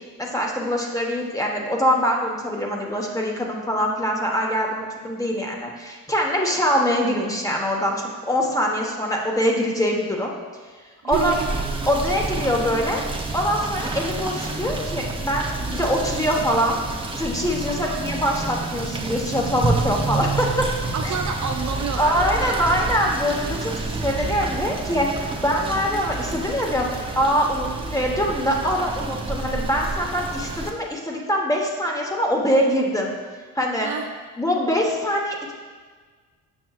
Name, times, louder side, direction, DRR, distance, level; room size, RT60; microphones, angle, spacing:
voice 1, 0.2-10.3 11.0-11.3 11.9-13.0 13.3-16.8 17.2-20.7 21.0-21.2 22.0-33.1 33.5-33.9 34.4-35.5, equal, 10° left, 0 dB, 1.2 m, -23 dB
voice 2, 11.0-11.6 17.7-18.0 20.9-22.8 33.8-34.1, right 6 dB, 50° right, 3 dB, 0.6 m, -29 dB
Rain / Motor vehicle (road), 11.1-30.7, right 3 dB, 15° right, 0.7 m, -29 dB
7.2 x 6.1 x 2.4 m, 1.5 s
supercardioid pair, 70°, 38 cm